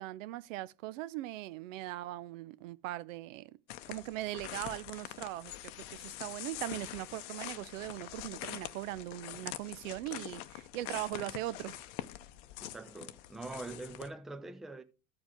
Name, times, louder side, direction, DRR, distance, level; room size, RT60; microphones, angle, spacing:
voice 1, 0.0-3.6 3.9-11.8, right 16 dB, 60° right, 0.6 m, -40 dB
sound 1, 3.7-14.1, left 15 dB, 55° left, 0.7 m, -45 dB
voice 2, 12.6-14.8, right 2 dB, ahead, 0.3 m, -44 dB
13.5 x 4.8 x 3.6 m
hypercardioid pair, 80°, 43 cm